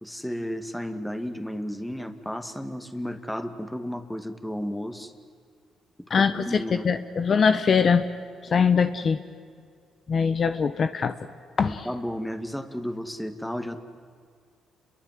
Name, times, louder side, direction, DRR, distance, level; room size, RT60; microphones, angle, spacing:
voice 1, 0.0-5.1 6.1-6.9 11.6-13.8, equal, 5° left, 8 dB, 2.2 m, -33 dB
voice 2, 6.1-8.1 8.4-9.2 10.1-11.1 11.6-11.9, left 6 dB, 45° left, 10 dB, 1.1 m, -22 dB
29.5 x 22.5 x 7.7 m, 2.2 s
cardioid pair, 90°, 0 cm